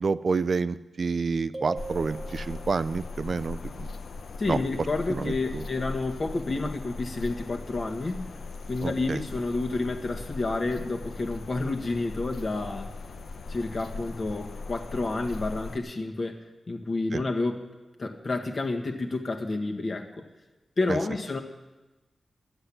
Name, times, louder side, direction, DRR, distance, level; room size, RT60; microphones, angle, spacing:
voice 1, 0.0-3.9 4.5-4.6 5.1-5.7 8.8-9.2 17.1-17.2 20.9-21.0, right 4 dB, 50° right, 14 dB, 0.4 m, -29 dB
sound 1, 1.5-3.0, right 3 dB, 15° right, 1.5 m, -40 dB
sound 2, 1.8-15.8, left 3 dB, 75° left, 0.8 m, -39 dB
voice 2, 4.4-8.3 8.7-12.9 13.5-16.4 16.7-17.6 18.0-20.2 20.8-21.4, left 2 dB, 45° left, 2 dB, 1.6 m, -30 dB
12.0 x 7.9 x 9.9 m, 1.1 s
wide cardioid pair, 105°, 0 cm